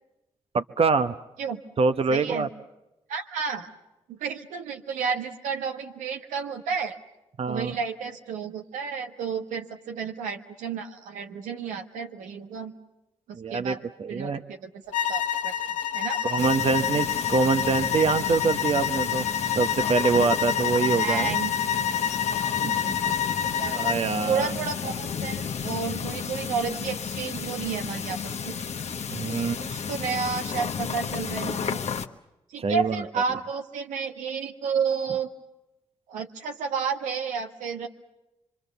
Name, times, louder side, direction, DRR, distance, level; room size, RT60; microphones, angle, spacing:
voice 1, 0.5-1.1 1.8-2.5 7.4-7.8 13.3-14.4 16.2-19.2 19.5-21.4 22.6-22.7 23.7-24.5 29.1-29.6 32.6-33.0, right 4 dB, 50° right, 11 dB, 0.9 m, -25 dB
voice 2, 2.1-2.5 3.1-3.7 4.1-7.0 7.5-12.7 13.3-13.8 14.1-14.8 15.1-15.5 15.9-16.2 20.8-21.9 22.8-23.2 23.5-23.8 24.2-28.6 29.3-31.8 32.5-35.3 36.1-37.9, right 6 dB, 90° right, 4 dB, 1.4 m, -31 dB
sound 1, 14.9-24.1, left 9 dB, 85° left, 1.0 m, -27 dB
sound 2, 16.4-32.1, left 6 dB, 60° left, 1.1 m, -33 dB
25.0 x 25.0 x 6.9 m, 0.96 s
supercardioid pair, 45°, 13 cm